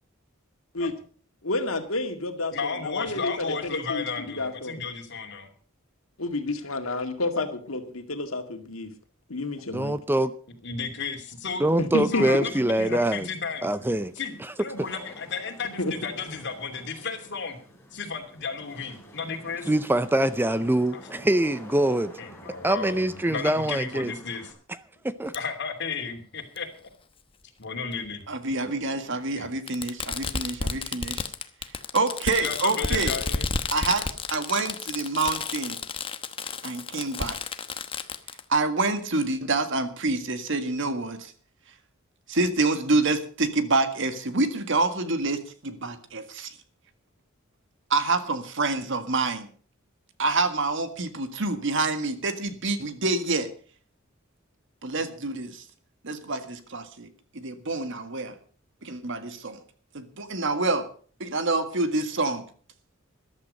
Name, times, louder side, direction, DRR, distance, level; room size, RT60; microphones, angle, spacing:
voice 1, 1.4-4.8 6.2-8.9 9.3-10.0 11.8-12.5 15.8-15.9, left 2 dB, 85° left, 2.1 m, -30 dB
voice 2, 2.5-5.5 10.6-11.6 12.1-13.7 14.2-17.6 17.9-19.7 22.2-24.5 25.3-26.7 27.6-28.2 29.4-29.5 30.2-30.4 32.4-33.5, left 5 dB, 60° left, 2.8 m, -33 dB
voice 3, 9.7-10.3 11.6-13.3 13.6-14.1 19.7-22.1 22.6-24.1 25.0-25.3, right 1 dB, 10° right, 0.6 m, -24 dB
Wind / Rain, 13.0-24.5, equal, 10° left, 5.1 m, -48 dB
Fireworks, 25.3-25.4 26.6-26.7 27.9-28.0 29.7-38.4, left 4 dB, 25° left, 1.0 m, -31 dB
voice 4, 28.3-31.3 31.9-33.1 33.7-35.8 36.6-37.4 38.5-41.3 42.3-46.5 47.9-49.5 50.2-53.5 54.8-55.6 56.0-57.1 57.3-58.3 58.8-59.6 59.9-60.9 61.2-62.4, right 3 dB, 65° right, 1.8 m, -27 dB
14.0 x 12.0 x 5.4 m
head